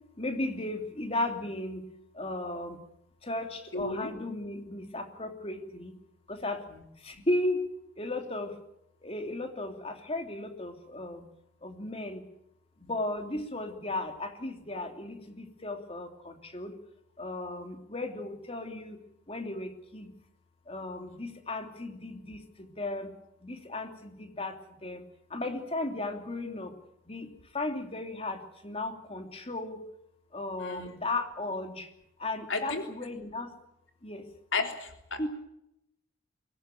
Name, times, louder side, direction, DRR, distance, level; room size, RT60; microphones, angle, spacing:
voice 1, 0.2-1.8 2.2-2.8 3.2-5.9 6.3-6.6 7.0-7.6 8.0-8.5 9.0-11.2 11.6-12.2 12.8-16.7 17.2-19.0 19.3-20.1 20.7-22.4 22.8-23.1 23.4-24.5 24.8-25.0 25.3-26.7 27.1-27.3 27.5-29.8 30.3-31.9 32.2-33.5 34.0-34.2 35.2-35.3, left 2 dB, 30° left, 6 dB, 3.0 m, -35 dB
voice 2, 3.7-4.1 6.7-6.8 30.6-30.9 32.5-32.9 34.5-35.3, left 3 dB, 80° left, 5 dB, 3.5 m, -33 dB
23.5 x 18.0 x 9.2 m, 0.80 s
head